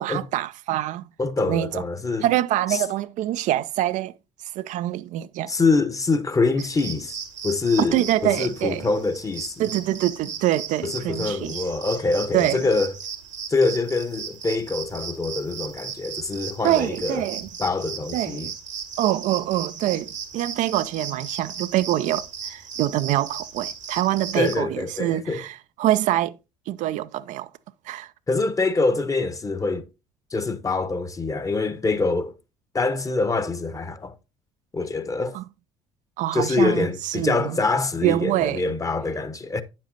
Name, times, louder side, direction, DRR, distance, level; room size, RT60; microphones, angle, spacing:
voice 1, 0.0-1.0 1.4-1.8 2.2-4.1 4.6-5.5 7.8-8.9 9.6-11.6 12.3-12.7 16.6-17.5 18.1-18.5 19.0-26.4 26.7-27.5 27.9-28.1 35.3-35.4 36.2-37.6 38.0-38.6, right 14 dB, 50° right, 0.5 m, -25 dB
voice 2, 1.2-2.3 2.7-2.8 5.5-7.2 7.4-9.7 10.8-12.9 13.5-17.2 17.6-18.5 24.3-25.4 28.3-29.9 30.3-32.4 32.7-34.2 34.7-35.4 36.3-39.6, left 3 dB, 20° left, 1.1 m, -25 dB
sound 1, 6.6-24.6, right 6 dB, 90° right, 1.6 m, -36 dB
10.0 x 7.4 x 2.8 m
figure-of-eight pair, 55°, 16 cm